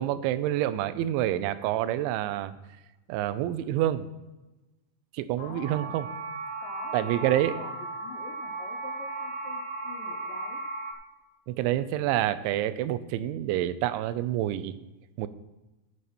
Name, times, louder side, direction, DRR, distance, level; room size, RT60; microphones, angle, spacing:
voice 1, 0.0-2.5 3.1-4.1 5.1-6.1 6.9-7.5 11.5-14.8 15.2-15.3, right 13 dB, 85° right, 13 dB, 3.0 m, -27 dB
voice 2, 5.4-6.1 6.6-10.6, left 4 dB, 80° left, 1 dB, 2.0 m, -45 dB
sound 1, 5.6-10.9, right 3 dB, 70° right, 2.2 m, -36 dB
14.0 x 8.1 x 4.3 m, 1.1 s
omnidirectional pair, 5.3 m